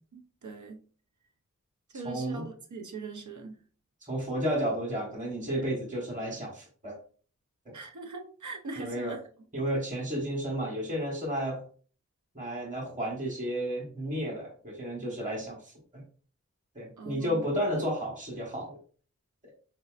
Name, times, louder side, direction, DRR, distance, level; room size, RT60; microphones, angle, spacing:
voice 1, 0.1-0.8 1.9-3.6 7.7-9.2 9.6-9.7 17.0-17.4, right 3 dB, 70° right, 0.7 m, -41 dB
voice 2, 1.9-2.5 4.0-6.9 7.6-7.7 8.8-9.2 9.5-11.6 12.3-16.0 16.7-18.8, equal, 25° right, 1.3 m, -32 dB
4.1 x 2.7 x 2.4 m
wide cardioid pair, 75°, 31 cm